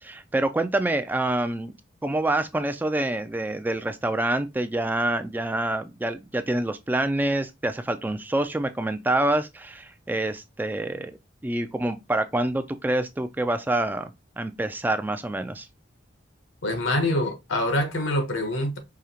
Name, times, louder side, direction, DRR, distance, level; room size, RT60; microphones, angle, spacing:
voice 1, 0.0-1.7 2.0-11.2 11.4-15.7, right 1 dB, 10° right, 0.3 m, -26 dB
voice 2, 16.6-18.8, left 1 dB, 80° left, 1.2 m, -25 dB
4.9 x 2.9 x 2.8 m
head